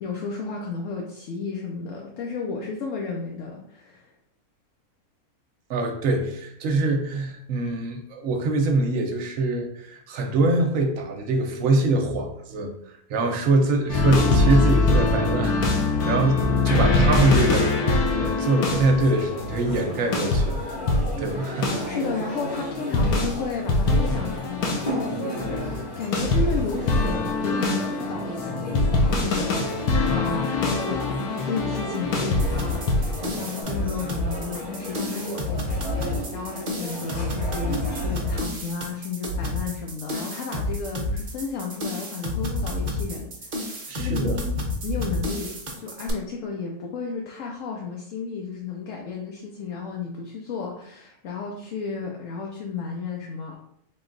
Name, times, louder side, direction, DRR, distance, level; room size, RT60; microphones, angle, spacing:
voice 1, 0.0-4.1 21.8-29.8 30.1-31.0 31.4-32.8 33.1-44.5 44.8-53.5, left 5 dB, 70° left, -1 dB, 0.9 m, -33 dB
voice 2, 5.7-12.7 13.1-20.6 21.2-21.9 29.6-29.7 43.9-44.4, right 2 dB, 65° right, 3 dB, 1.0 m, -24 dB
sound 1, 13.9-21.3 21.6-21.9 22.9-33.5, left 3 dB, 90° left, 1.2 m, -23 dB
sound 2, 19.0-38.4, right 1 dB, 35° left, 0.9 m, -35 dB
sound 3, 32.4-46.1, left 1 dB, 45° right, 0.6 m, -30 dB
3.8 x 2.3 x 3.8 m, 0.72 s
omnidirectional pair, 1.6 m